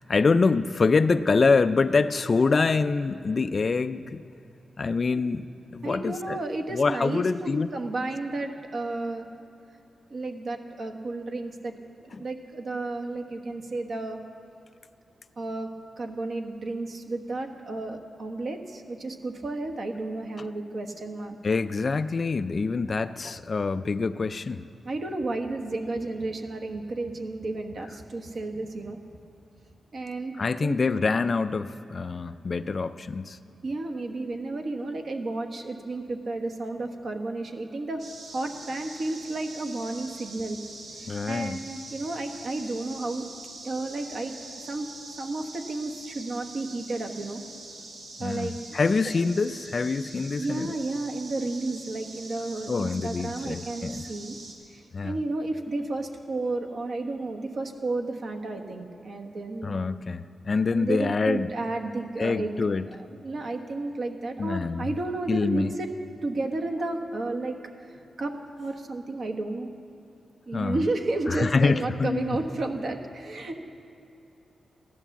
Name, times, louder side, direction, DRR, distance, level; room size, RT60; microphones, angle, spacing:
voice 1, 0.0-4.2 4.8-5.5 5.7-6.4 6.7-7.7 12.1-12.2 21.4-24.7 30.4-33.4 41.1-41.6 48.2-50.7 52.7-54.1 54.9-55.2 59.6-61.5 62.2-62.9 64.4-64.9 65.3-65.7 70.5-70.8 71.3-72.4, left 4 dB, 40° left, 12 dB, 0.4 m, -25 dB
voice 2, 5.8-9.3 10.1-14.2 15.4-15.7 16.0-21.4 24.8-29.0 29.9-30.3 30.6-30.8 33.6-38.0 38.3-40.6 41.0-43.2 43.6-44.3 44.6-44.9 45.2-47.4 48.2-48.5 49.0-49.2 50.3-54.4 54.7-59.7 60.7-62.6 63.2-65.9 66.2-67.6 67.9-69.7 70.5-73.6, right 2 dB, 50° right, 4 dB, 1.2 m, -32 dB
sound 1, 38.0-54.6, right 2 dB, 70° right, 2.4 m, -44 dB
15.5 x 11.0 x 7.2 m, 2.8 s
wide cardioid pair, 145°, 0 cm